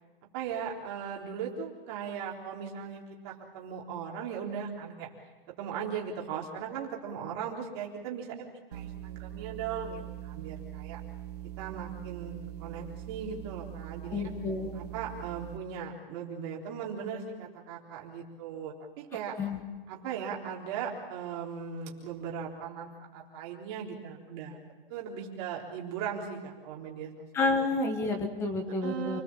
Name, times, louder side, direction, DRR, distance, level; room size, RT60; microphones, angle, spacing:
voice 1, 0.3-5.1 5.6-11.0 11.6-14.2 14.7-19.4 19.9-24.6 24.9-27.5 28.8-29.2, right 7 dB, 25° right, -2 dB, 3.8 m, -38 dB
sound 1, 8.7-15.6, right 12 dB, 40° right, 1.3 m, -42 dB
voice 2, 14.1-14.7 19.4-19.6 27.3-29.2, left 3 dB, 10° left, 6 dB, 1.5 m, -30 dB
29.0 x 20.0 x 7.5 m, 1.3 s
hypercardioid pair, 180°, 29 cm